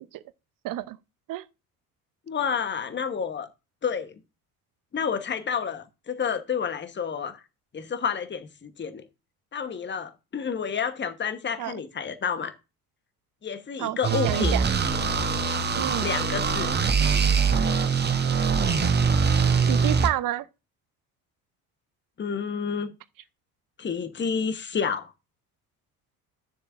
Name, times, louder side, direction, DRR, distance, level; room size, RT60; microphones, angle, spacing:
voice 1, 0.6-1.0 1.3-1.4 11.6-11.7 13.8-14.0 14.2-14.6 15.8-16.1 19.7-20.5, right 14 dB, 45° right, 0.8 m, -29 dB
voice 2, 2.3-3.5 3.8-4.1 4.9-7.4 7.7-9.0 9.5-12.5 13.4-14.6 16.0-16.7 22.2-22.9 23.8-25.1, left 6 dB, 25° left, 1.2 m, -29 dB
sound 1, 14.0-20.1, right 5 dB, 20° right, 1.1 m, -23 dB
13.5 x 6.9 x 2.6 m
figure-of-eight pair, 55°, 45 cm